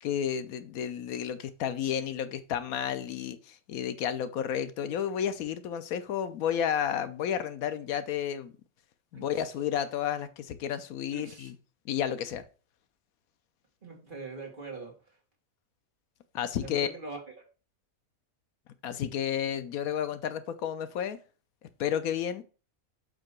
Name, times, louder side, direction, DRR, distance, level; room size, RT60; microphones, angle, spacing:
voice 1, 0.0-8.5 9.1-11.6 11.9-12.4 16.3-16.9 18.8-21.2 21.8-22.4, left 9 dB, 85° left, 1.1 m, -31 dB
voice 2, 11.1-11.5 13.8-14.9 16.6-17.2, right 3 dB, 35° right, 2.0 m, -41 dB
7.6 x 2.9 x 5.9 m
omnidirectional pair, 1.5 m